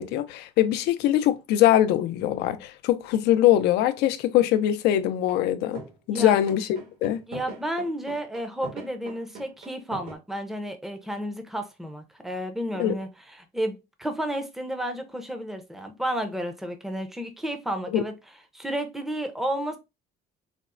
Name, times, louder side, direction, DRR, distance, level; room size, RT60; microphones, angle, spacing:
voice 1, 0.0-5.8 6.1-7.2 12.8-12.9 17.9-18.0, left 12 dB, 85° left, 0.4 m, -22 dB
sound 1, 5.3-5.5 5.7-10.1, right 4 dB, 70° right, 1.4 m, -41 dB
voice 2, 7.3-18.1 18.5-19.8, right 1 dB, ahead, 0.5 m, -32 dB
4.1 x 2.0 x 2.4 m
cardioid pair, 110°, 17 cm